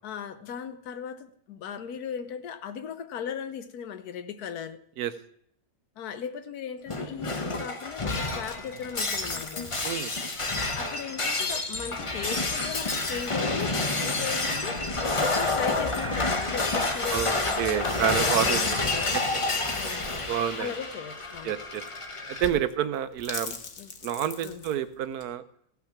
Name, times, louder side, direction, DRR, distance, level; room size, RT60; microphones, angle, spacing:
voice 1, 0.0-4.8 6.0-9.8 10.6-19.2 19.7-20.2 20.6-21.6 22.5-22.6 23.8-23.9 24.4-24.6, left 7 dB, 85° left, 10 dB, 1.3 m, -38 dB
Shatter, 6.9-22.5, left 3 dB, 25° left, 0.8 m, -29 dB
voice 2, 17.6-18.8 20.3-20.7 21.4-21.8 22.4-23.5 24.0-25.4, right 10 dB, 85° right, 12 dB, 1.2 m, -28 dB
sound 1, 20.6-25.3, left 5 dB, 65° left, 1.4 m, -44 dB
15.5 x 6.0 x 5.9 m, 0.70 s
omnidirectional pair, 1.6 m